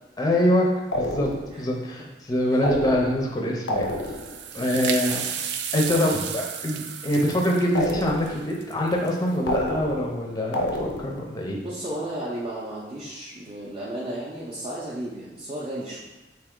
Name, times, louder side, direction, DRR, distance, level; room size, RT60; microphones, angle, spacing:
voice 1, 0.2-0.7 1.0-1.3 1.6-3.9 4.5-5.2 5.7-11.6, equal, 20° left, 0 dB, 0.5 m, -24 dB
sound 1, 0.9-1.6 2.6-3.3 3.7-4.4 7.7-8.5 9.5-10.2 10.5-11.3, left 1 dB, 75° left, 0.5 m, -29 dB
sound 2, 3.8-9.4, right 8 dB, 70° right, 0.3 m, -33 dB
voice 2, 4.6-5.3 11.5-16.0, right 1 dB, 25° right, -7 dB, 0.6 m, -34 dB
3.5 x 2.7 x 3.7 m, 1.1 s
head